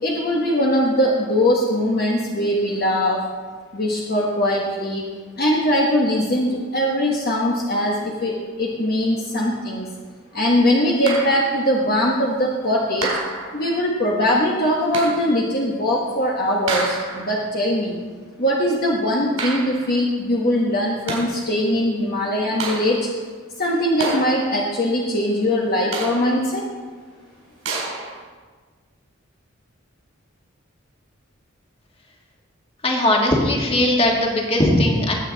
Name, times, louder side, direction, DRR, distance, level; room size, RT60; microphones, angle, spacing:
voice 1, 0.0-3.2 3.7-5.0 5.4-9.9 10.3-13.1 13.5-18.0 18.4-23.1 23.6-26.7, left 1 dB, 45° left, -3 dB, 1.4 m, -21 dB
sound 1, 11.1-11.6 13.0-13.7 14.9-15.4 16.7-17.4 19.4-20.0 20.9-21.5 22.6-23.2 24.0-24.7 25.9-26.5 27.6-28.2, right 3 dB, 80° right, 3.8 m, -29 dB
voice 2, 32.8-35.1, left 1 dB, 25° left, 0 dB, 1.9 m, -19 dB
19.0 x 8.3 x 4.0 m, 1.5 s
head